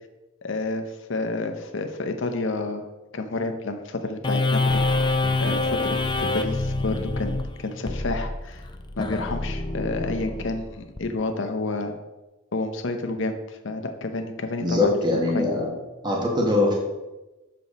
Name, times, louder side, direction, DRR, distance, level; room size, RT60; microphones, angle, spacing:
voice 1, 0.4-0.8 1.1-2.8 3.1-4.8 5.4-8.6 9.0-12.0 12.5-13.3 13.6-15.5, left 2 dB, 60° left, 6 dB, 0.7 m, -29 dB
sound 1, 4.2-11.0, left 2 dB, 20° left, 0.4 m, -26 dB
voice 2, 14.6-15.7 16.0-16.7, left 2 dB, 20° right, -2 dB, 1.1 m, -22 dB
6.6 x 5.9 x 4.0 m, 1.1 s
head